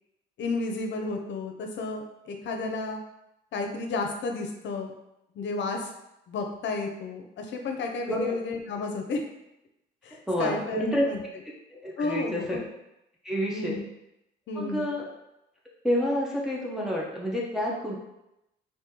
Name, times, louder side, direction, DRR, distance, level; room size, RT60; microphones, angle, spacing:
voice 1, 0.4-3.0 3.5-4.9 5.3-5.9 6.3-9.2 10.0-11.2 12.0-12.6 13.5-13.8 14.5-14.9, left 3 dB, 65° left, 3 dB, 0.7 m, -32 dB
voice 2, 10.3-11.1 11.7-12.6 13.2-13.8 14.6-15.0 15.8-18.0, equal, ahead, -4 dB, 0.7 m, -28 dB
3.0 x 2.7 x 3.7 m, 0.87 s
cardioid pair, 90°, 20 cm